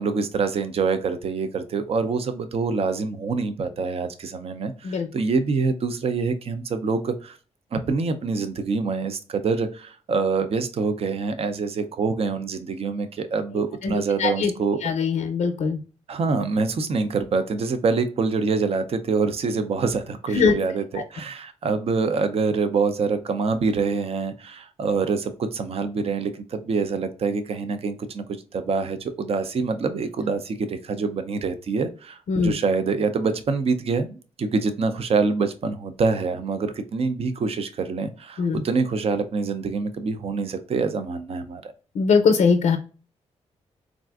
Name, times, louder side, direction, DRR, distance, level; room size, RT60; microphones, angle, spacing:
voice 1, 0.0-7.4 7.7-14.8 16.1-41.7, right 4 dB, 55° right, 9 dB, 0.5 m, -25 dB
voice 2, 13.8-14.5 14.8-15.8 20.3-20.5 32.3-32.5 38.4-38.6 41.9-42.8, left 5 dB, 85° left, 5 dB, 0.5 m, -21 dB
3.6 x 2.4 x 2.3 m, 0.35 s
cardioid pair, 80°, 12 cm